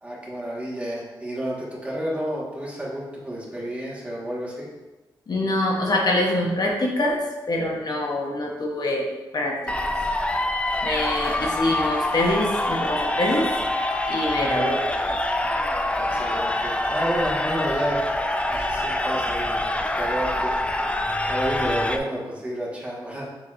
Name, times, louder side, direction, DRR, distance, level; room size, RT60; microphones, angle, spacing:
voice 1, 0.0-4.7 16.1-18.0 18.5-19.7 19.9-20.5 21.3-23.3, equal, 15° right, -5 dB, 1.5 m, -30 dB
voice 2, 5.3-7.2 7.5-9.1 9.3-9.7 10.8-13.5 14.1-14.8, left 1 dB, 50° left, -1 dB, 0.8 m, -24 dB
sound 1, 9.7-22.0, left 1 dB, 15° left, 0.4 m, -25 dB
6.6 x 2.9 x 2.5 m, 1.2 s
cardioid pair, 70°, 9 cm